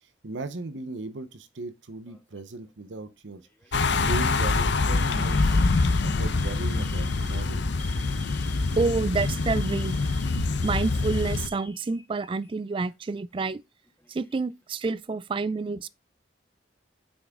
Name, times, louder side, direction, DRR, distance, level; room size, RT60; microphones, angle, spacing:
voice 1, 0.0-3.4 3.7-5.6 6.0-7.6, right 2 dB, 85° right, 0.8 m, -38 dB
Alarm, 2.1-2.6 3.4-3.7 4.2-4.4 5.0-12.5 12.8-12.9 13.8-14.5, left 2 dB, 10° left, 1.4 m, -47 dB
sound 1, 3.7-11.5, left 3 dB, 70° left, 0.7 m, -25 dB
voice 2, 8.8-10.0 10.6-13.6 14.1-15.9, right 4 dB, 30° right, 0.3 m, -28 dB
6.2 x 6.0 x 3.6 m
head